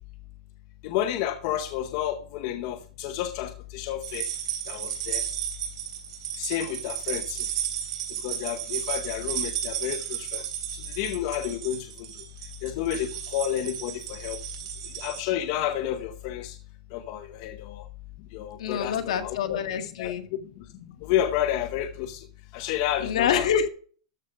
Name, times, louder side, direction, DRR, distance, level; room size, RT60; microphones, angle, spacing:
voice 1, 0.8-4.3 4.7-5.2 6.4-7.4 8.2-10.4 11.0-11.9 12.6-14.4 15.0-16.6 16.9-17.8 18.3-19.6 20.0-20.1 21.0-22.2 22.5-23.5, left 11 dB, 35° left, 7 dB, 0.8 m, -30 dB
sound 1, 4.0-15.2, right 10 dB, 55° right, 3.6 m, -33 dB
voice 2, 18.6-20.3 23.0-23.7, left 8 dB, 65° left, 7 dB, 1.7 m, -26 dB
13.5 x 4.9 x 6.6 m, 0.43 s
supercardioid pair, 170°, 4 cm